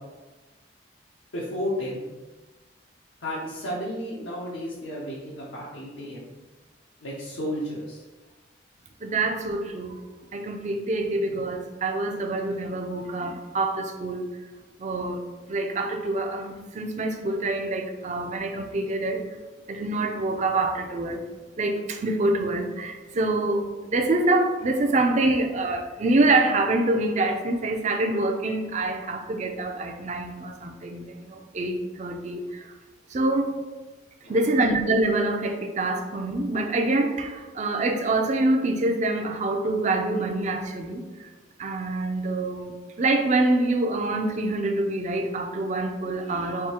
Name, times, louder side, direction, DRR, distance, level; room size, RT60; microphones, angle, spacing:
voice 1, 1.3-2.0 3.2-6.3 7.0-8.0 34.2-34.5, equal, 90° left, -7 dB, 0.8 m, -32 dB
voice 2, 9.0-10.0 10.3-14.3 14.8-19.3 19.7-21.3 21.6-32.7 33.1-33.6 34.3-41.3 41.6-46.7, right 2 dB, 35° right, 4 dB, 0.4 m, -26 dB
3.6 x 2.7 x 4.3 m, 1.2 s
head